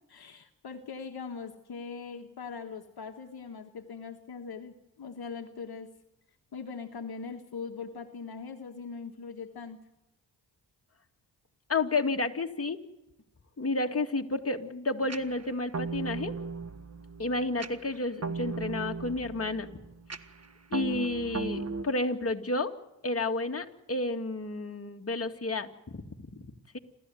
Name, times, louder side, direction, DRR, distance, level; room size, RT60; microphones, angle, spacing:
voice 1, 0.1-5.9 6.5-9.8, left 5 dB, 55° left, 5 dB, 1.6 m, -41 dB
voice 2, 11.7-12.8 13.6-16.3 17.2-19.7 20.7-22.7 23.0-26.8, left 2 dB, 30° left, 4 dB, 2.3 m, -31 dB
sound 1, 15.1-21.8, right 4 dB, 35° right, 1.6 m, -37 dB
27.5 x 14.0 x 9.4 m, 0.95 s
supercardioid pair, 45°, 45 cm